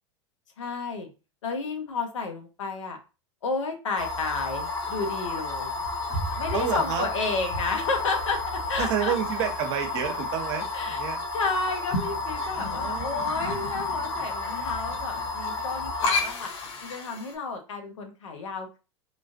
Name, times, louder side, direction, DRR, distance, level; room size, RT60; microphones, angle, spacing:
voice 1, 0.6-1.1 1.4-3.0 3.4-5.8 6.4-9.1 10.7-11.0 11.3-16.5 16.8-18.8, left 4 dB, 85° left, 4 dB, 1.0 m, -31 dB
sound 1, 4.0-17.3, left 3 dB, 65° left, 1.3 m, -31 dB
voice 2, 6.5-7.1 8.8-11.2 12.7-13.3, right 8 dB, 65° right, 5 dB, 1.0 m, -29 dB
3.6 x 2.4 x 2.6 m, 0.30 s
hypercardioid pair, 105°, 15 cm